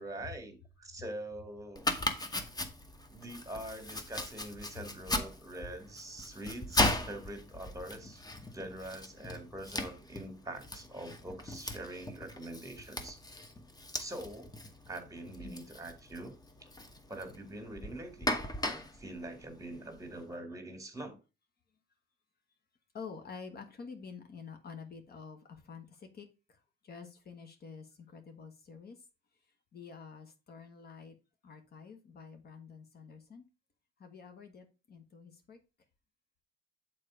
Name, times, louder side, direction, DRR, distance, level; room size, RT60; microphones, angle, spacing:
voice 1, 0.0-1.9 3.1-8.2 8.5-13.2 14.0-14.5 14.9-16.4 16.6-16.7 17.1-18.3 18.6-21.2, right 1 dB, 15° right, 2.1 m, -44 dB
Domestic sounds home sounds, 1.7-20.2, left 1 dB, 20° left, 1.1 m, -38 dB
voice 2, 22.9-29.0 29.7-31.2 31.4-33.4 34.0-35.6, left 5 dB, 50° left, 1.4 m, -49 dB
6.8 x 4.2 x 5.0 m
cardioid pair, 90°, 20 cm